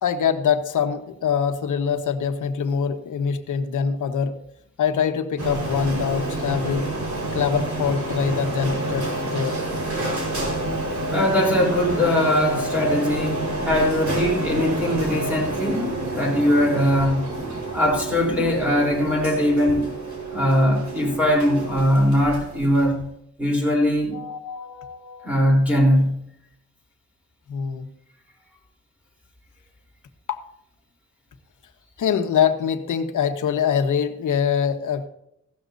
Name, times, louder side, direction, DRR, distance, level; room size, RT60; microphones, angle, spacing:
voice 1, 0.0-4.4 4.8-6.9 7.3-9.6 12.3-12.6 13.1-13.3 13.5-13.6 24.1-25.7 27.5-27.9 30.3-30.4 32.0-35.1, left 7 dB, 85° left, 7 dB, 1.3 m, -24 dB
Printer, 5.4-23.1, right 2 dB, 70° right, 4.8 m, -28 dB
voice 2, 11.1-17.2 17.7-19.9 20.3-22.9 23.4-24.2 25.2-26.2, equal, 5° right, -3 dB, 3.7 m, -21 dB
16.5 x 13.0 x 2.7 m, 0.79 s
wide cardioid pair, 165°, 30 cm